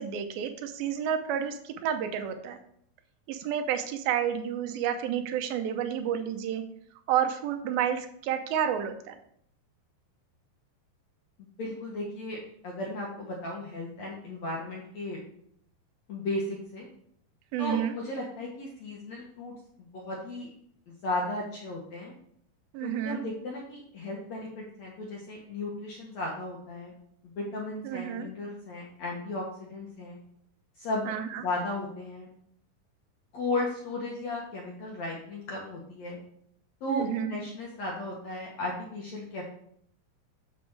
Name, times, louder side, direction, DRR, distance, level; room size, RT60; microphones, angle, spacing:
voice 1, 0.0-2.6 3.3-6.6 7.1-9.2 17.5-18.0 22.7-23.2 27.8-28.3 31.1-31.4 36.9-37.3, right 9 dB, 75° right, 7 dB, 2.3 m, -30 dB
voice 2, 11.6-12.4 12.6-15.2 16.1-16.9 17.6-20.5 20.9-22.1 22.8-26.9 27.2-30.2 30.8-31.1 31.4-32.3 33.3-36.2 36.8-39.4, left 2 dB, 65° left, -2 dB, 1.8 m, -35 dB
7.3 x 6.9 x 4.6 m, 0.68 s
omnidirectional pair, 4.8 m